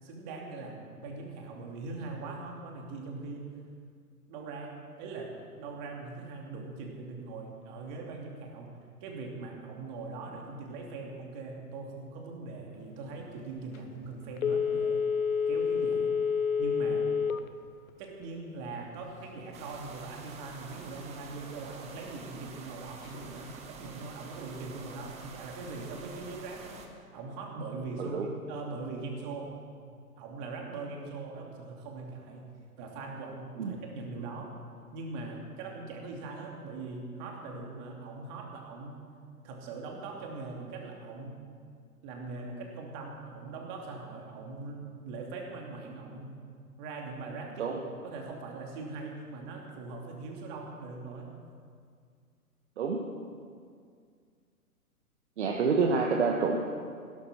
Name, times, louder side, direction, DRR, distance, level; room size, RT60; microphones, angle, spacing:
voice 1, 0.0-3.5 4.3-15.1 15.5-16.1 16.6-17.1 18.0-26.8 27.1-29.6 30.2-34.5 34.9-39.0 39.4-41.4 42.0-46.3 46.8-47.8 48.0-51.3, right 3 dB, 30° right, 0 dB, 2.7 m, -41 dB
Telephone, 14.4-17.5 17.9-18.0, left 6 dB, 65° left, 1.0 m, -28 dB
sound 1, 19.5-26.9, right 4 dB, 15° right, 1.1 m, -48 dB
voice 2, 28.0-28.3 33.6-33.7 47.6-47.8 52.8-53.0 55.4-56.6, right 4 dB, 45° right, 1 dB, 1.5 m, -27 dB
16.5 x 12.5 x 6.1 m, 2.2 s
figure-of-eight pair, 125°, 46 cm